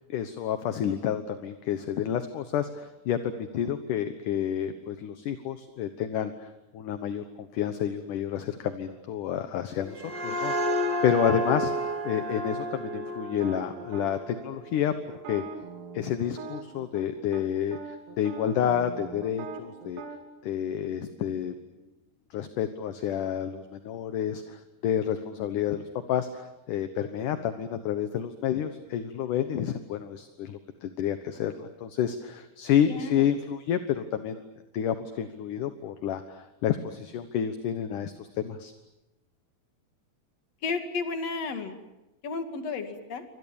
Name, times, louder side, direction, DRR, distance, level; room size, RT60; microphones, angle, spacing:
voice 1, 0.1-14.9 15.3-15.4 15.9-20.0 20.4-21.6 22.3-34.4 34.7-38.7, left 9 dB, 65° left, 9 dB, 2.4 m, -29 dB
sound 1, 9.7-15.2, equal, 30° right, 2.5 m, -31 dB
sound 2, 13.4-14.1 15.1-17.1 17.3-17.4 17.7-20.2, right 5 dB, 85° right, 4.5 m, -41 dB
voice 2, 32.9-33.3 40.6-41.8 42.2-43.2, left 4 dB, 45° left, 6 dB, 3.0 m, -33 dB
28.5 x 25.5 x 7.1 m, 1.0 s
omnidirectional pair, 4.7 m